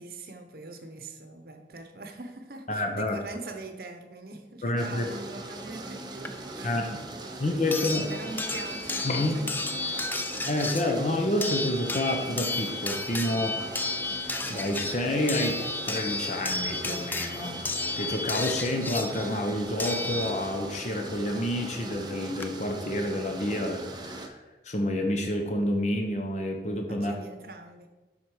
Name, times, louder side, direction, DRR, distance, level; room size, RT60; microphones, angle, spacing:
voice 1, 0.0-7.6 8.1-10.1 26.9-27.9, right 2 dB, 55° right, 6 dB, 0.9 m, -43 dB
voice 2, 2.7-3.2 4.6-5.0 6.6-7.0 7.4-8.1 9.0-9.4 10.4-13.6 14.5-17.6 18.0-24.4 24.6-27.1, left 1 dB, 40° left, 3 dB, 0.8 m, -29 dB
sound 1, 4.8-24.3, right 2 dB, 25° right, 0.7 m, -40 dB
sound 2, 6.2-6.3 7.7-20.7 22.0-22.1 22.4-22.5, left 3 dB, 10° left, 0.3 m, -33 dB
7.7 x 5.7 x 4.9 m, 1.2 s
head